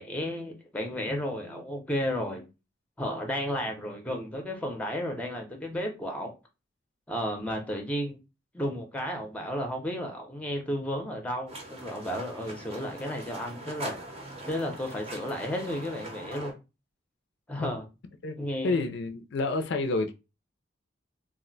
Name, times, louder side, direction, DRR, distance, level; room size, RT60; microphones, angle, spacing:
voice 1, 0.0-2.4 3.0-6.3 7.1-8.2 8.5-14.0 14.4-16.5 17.5-17.8 18.4-18.8, equal, 5° left, 0.6 m, -33 dB
sound 1, 11.5-16.5, right 1 dB, 35° right, 0.7 m, -41 dB
voice 2, 18.6-20.1, left 3 dB, 60° left, 0.4 m, -29 dB
2.4 x 2.1 x 3.8 m
head